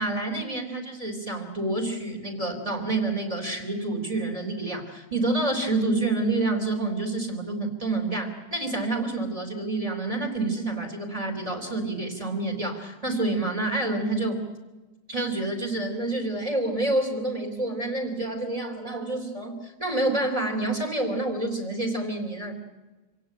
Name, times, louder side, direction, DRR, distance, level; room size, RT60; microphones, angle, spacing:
voice 1, 0.0-14.4 15.1-22.6, right 2 dB, 15° right, 4 dB, 3.5 m, -28 dB
26.5 x 17.0 x 9.0 m, 1.2 s
omnidirectional pair, 2.1 m